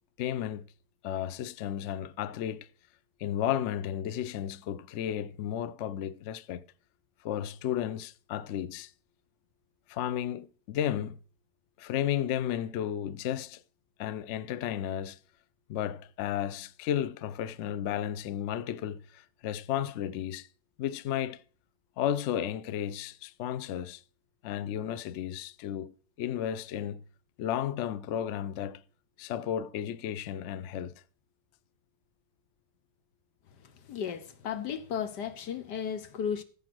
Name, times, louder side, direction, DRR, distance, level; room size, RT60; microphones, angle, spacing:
voice 1, 0.2-0.6 1.0-2.7 3.2-6.6 7.2-8.9 9.9-11.2 11.8-13.6 14.0-15.2 15.7-20.5 20.8-21.4 22.0-24.0 24.4-25.9 26.2-27.0 27.4-28.8 29.2-30.9, left 10 dB, 85° left, 0.6 m, -33 dB
voice 2, 33.9-36.4, left 8 dB, 70° left, 1.5 m, -34 dB
14.5 x 5.0 x 6.1 m
omnidirectional pair, 2.0 m